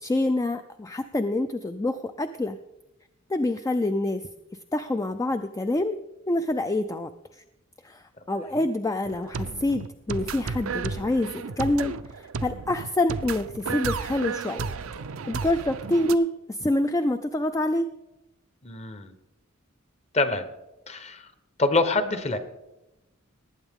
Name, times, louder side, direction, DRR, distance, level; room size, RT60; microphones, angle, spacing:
voice 1, 0.0-2.6 3.3-4.2 4.7-6.0 6.3-7.1 7.8-8.0 8.3-14.7 15.3-17.9, left 1 dB, 15° left, 9 dB, 0.3 m, -26 dB
sound 1, 9.0-16.1, right 5 dB, 75° right, 0.5 m, -33 dB
voice 2, 18.6-19.1 20.1-20.5 20.9-21.3 21.6-22.4, left 3 dB, 30° left, 10 dB, 0.9 m, -25 dB
19.0 x 9.0 x 3.6 m, 0.93 s
head